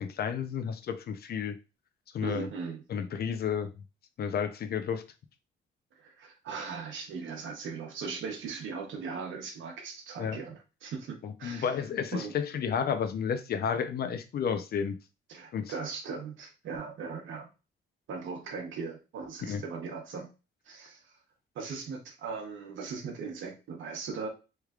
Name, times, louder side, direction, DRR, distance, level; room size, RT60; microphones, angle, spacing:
voice 1, 0.0-1.5 2.1-2.5 2.9-3.7 4.2-5.0 10.2-10.4 11.2-15.0 15.5-15.7 19.4-19.6, left 7 dB, 50° left, 0.5 m, -31 dB
voice 2, 2.2-2.8 6.0-11.8 12.1-12.3 15.3-17.5 18.1-20.3 20.7-21.2 21.5-24.3, right 5 dB, 75° right, 1.0 m, -39 dB
3.2 x 3.2 x 2.3 m
cardioid pair, 90°, 20 cm